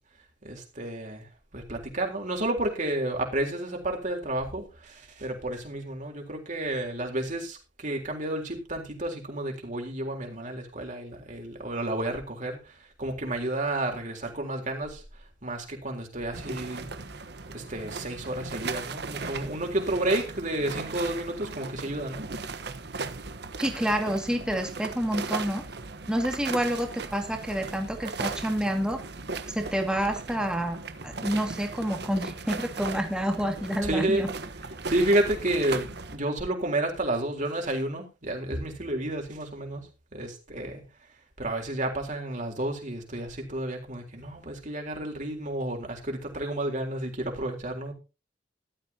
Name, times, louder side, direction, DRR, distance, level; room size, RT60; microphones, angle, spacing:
voice 1, 0.4-15.0 15.4-16.9 17.5-22.2 27.6-27.7 28.0-28.1 33.8-34.2 34.9-40.8 41.4-47.9, right 1 dB, 40° right, 2 dB, 3.8 m, -31 dB
sound 1, 16.3-36.2, right 4 dB, 60° right, 1.2 m, -37 dB
voice 2, 23.6-25.6 26.1-29.0 29.5-30.8 31.0-34.3, equal, 5° right, 3 dB, 2.2 m, -28 dB
15.0 x 12.5 x 2.9 m, 0.29 s
head